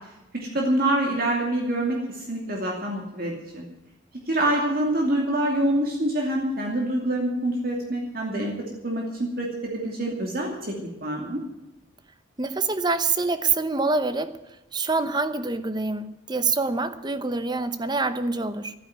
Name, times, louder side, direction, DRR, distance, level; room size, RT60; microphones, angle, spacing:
voice 1, 0.3-3.6 4.3-8.5 8.8-10.8 11.0-11.4, right 1 dB, 50° right, 2.6 m, -26 dB
voice 2, 12.4-14.4 14.7-18.7, right 3 dB, 20° right, 0.8 m, -26 dB
12.5 x 10.0 x 9.3 m
head